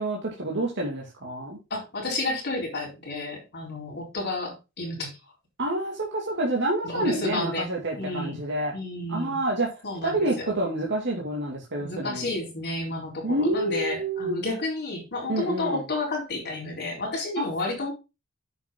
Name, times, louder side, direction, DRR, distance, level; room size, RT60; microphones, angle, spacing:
voice 1, 0.0-1.6 5.6-8.7 9.1-9.7 10.0-12.3 13.2-14.4 15.3-15.8 17.4-17.5, right 1 dB, 55° right, -2 dB, 2.4 m, -28 dB
voice 2, 1.7-5.1 6.8-7.7 8.0-8.4 8.7-9.4 9.8-10.5 11.8-17.9, left 2 dB, 50° left, -1 dB, 4.3 m, -31 dB
9.1 x 6.9 x 3.8 m, 0.27 s
head